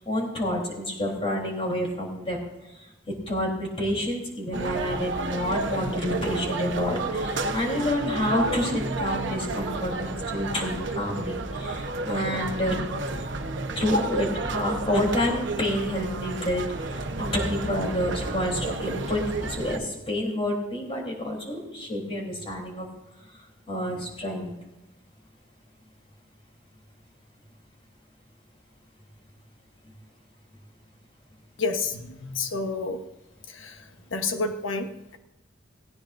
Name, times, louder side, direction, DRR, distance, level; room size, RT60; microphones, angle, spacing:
voice 1, 0.0-2.4 3.3-12.9 13.8-16.7 17.2-22.9 23.7-24.5, left 1 dB, 30° left, -1 dB, 3.6 m, -28 dB
sound 1, 4.5-19.8, right 2 dB, 65° right, 1.0 m, -31 dB
voice 2, 31.6-33.0 33.5-33.8 34.1-35.2, left 3 dB, 85° left, 7 dB, 1.1 m, -29 dB
18.0 x 16.0 x 2.6 m, 0.97 s
head